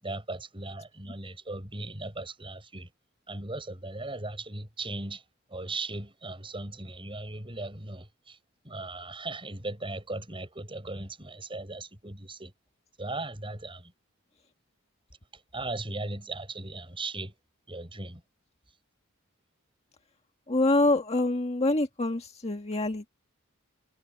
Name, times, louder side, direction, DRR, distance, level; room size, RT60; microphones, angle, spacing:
voice 1, 0.0-2.9 3.3-5.2 5.5-8.4 8.6-12.5 13.0-13.9 15.3-17.3 17.7-18.2, right 2 dB, 25° right, 7.8 m, -38 dB
voice 2, 20.5-23.1, left 2 dB, 30° left, 1.7 m, -26 dB
head